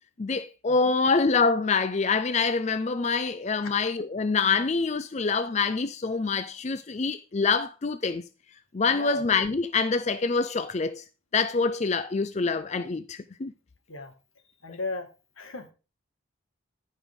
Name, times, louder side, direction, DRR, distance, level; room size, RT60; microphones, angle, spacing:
voice 1, 0.2-8.2 8.7-11.0 11.3-13.5, left 4 dB, 35° left, 0.4 m, -26 dB
voice 2, 14.6-15.1 15.4-15.7, left 3 dB, 90° left, 2.0 m, -35 dB
14.0 x 5.5 x 3.6 m
head